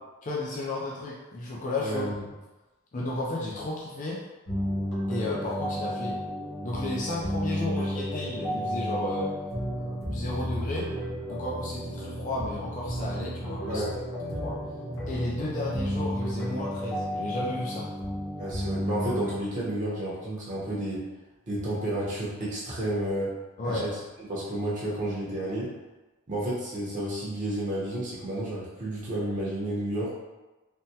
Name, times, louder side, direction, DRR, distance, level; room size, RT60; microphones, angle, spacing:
voice 1, 0.2-2.1 2.9-4.2 5.1-6.2 6.6-9.3 10.1-10.9 11.3-13.8 14.4-14.6 15.1-17.9 23.6-23.9, left 2 dB, 35° left, -4 dB, 0.4 m, -33 dB
voice 2, 1.8-2.1 13.7-13.9 18.4-21.1 21.5-23.3 23.6-24.0 24.3-25.7 26.3-30.1, right 1 dB, 35° right, -7 dB, 0.8 m, -31 dB
sound 1, 4.5-19.3, equal, 50° left, 1.1 m, -32 dB
3.4 x 2.1 x 2.8 m, 1.1 s
head